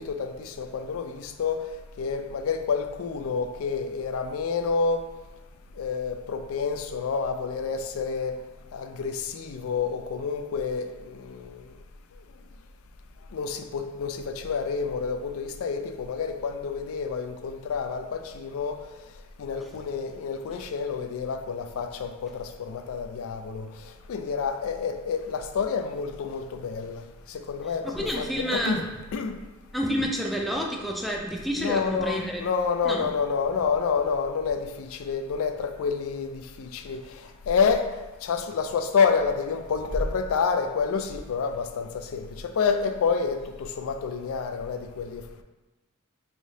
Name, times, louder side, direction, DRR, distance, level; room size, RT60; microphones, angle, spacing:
voice 1, 0.0-1.6 2.0-5.0 5.8-8.4 8.7-11.6 13.3-18.8 19.4-23.7 24.1-28.8 29.1-29.3 31.6-37.9 38.2-45.3, left 5 dB, 75° left, 7 dB, 0.3 m, -28 dB
voice 2, 27.8-28.8 29.7-32.4 32.8-33.1, equal, ahead, -1 dB, 0.4 m, -29 dB
3.5 x 3.5 x 2.7 m, 1.1 s
head